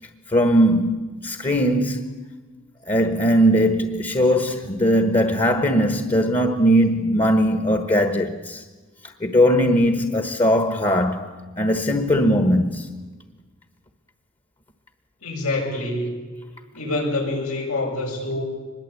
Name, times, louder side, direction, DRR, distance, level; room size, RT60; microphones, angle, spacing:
voice 1, 0.3-2.1 2.9-8.6 9.2-13.0, equal, 25° left, 1.2 m, -19 dB
voice 2, 15.2-16.2 16.7-18.4, left 2 dB, 90° left, 7.2 m, -26 dB
24.5 x 21.5 x 8.4 m
head